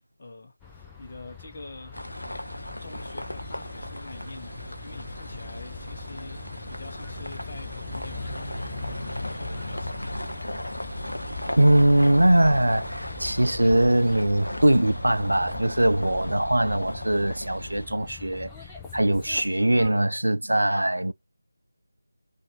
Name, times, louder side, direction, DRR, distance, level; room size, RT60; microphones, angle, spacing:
voice 1, 0.2-2.0 2.8-10.1, left 2 dB, 40° left, 0.9 m, -45 dB
sound 1, 0.6-19.9, left 7 dB, 5° left, 0.4 m, -43 dB
sound 2, 1.9-17.9, equal, 90° left, 0.5 m, -36 dB
voice 2, 11.6-18.5 18.9-21.1, right 1 dB, 80° right, 0.3 m, -21 dB
2.6 x 2.5 x 2.8 m
figure-of-eight pair, 165°, 0 cm